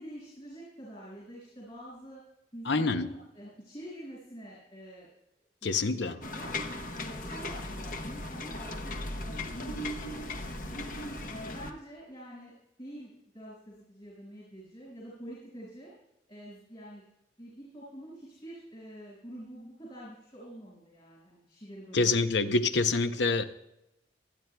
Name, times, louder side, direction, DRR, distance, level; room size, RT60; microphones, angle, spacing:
voice 1, 0.0-2.2 2.5-5.1 5.9-6.6 7.0-10.4 10.7-10.9 11.3-12.5 12.8-15.9 16.3-17.0 17.4-22.1 22.4-22.6 23.2-23.4, equal, 30° left, -5 dB, 5.4 m, -46 dB
voice 2, 2.6-3.1 5.6-6.2 21.9-23.4, left 3 dB, 80° left, 10 dB, 0.7 m, -26 dB
sound 1, 6.2-11.7, left 1 dB, 50° left, 0.9 m, -37 dB
26.5 x 9.2 x 2.2 m, 0.87 s
head